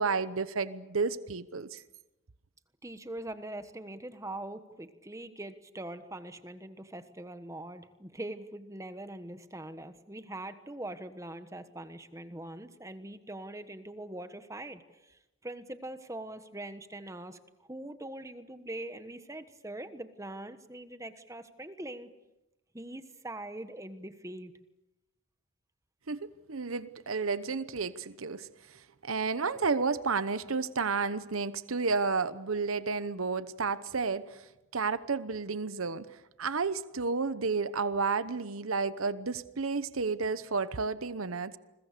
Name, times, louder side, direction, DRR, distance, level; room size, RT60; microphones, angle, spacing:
voice 1, 0.0-1.8 26.1-34.4 34.7-41.6, right 4 dB, 85° right, 14 dB, 1.0 m, -31 dB
voice 2, 2.8-22.1 22.7-24.5, right 1 dB, 15° right, 10 dB, 1.3 m, -42 dB
29.5 x 21.5 x 6.8 m, 1.0 s
head